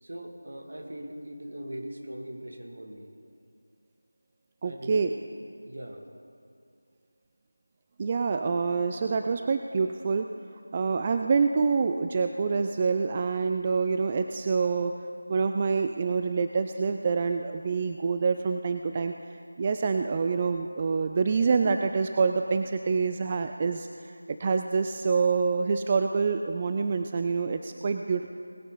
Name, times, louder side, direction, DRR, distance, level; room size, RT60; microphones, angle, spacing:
voice 1, 0.0-3.1 4.6-5.1 5.6-6.0, right 1 dB, 70° right, 2 dB, 2.3 m, -40 dB
voice 2, 4.6-5.1 8.0-10.3 10.7-15.0 15.3-28.3, right 5 dB, 25° right, 6 dB, 0.3 m, -26 dB
19.5 x 10.0 x 4.0 m, 2.3 s
figure-of-eight pair, 170°, 0 cm